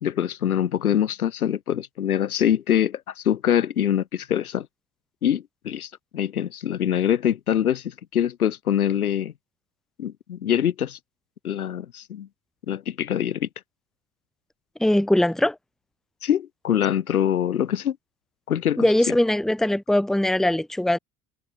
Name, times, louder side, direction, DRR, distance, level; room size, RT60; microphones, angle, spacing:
voice 1, 0.0-4.7 5.2-9.3 10.0-11.0 11.4-12.3 12.7-13.5 16.2-18.0 18.5-18.9, left 10 dB, 75° left, 2.7 m, -24 dB
voice 2, 14.8-15.5 18.8-21.0, left 1 dB, ahead, 1.4 m, -21 dB
figure-of-eight pair, 55°, 44 cm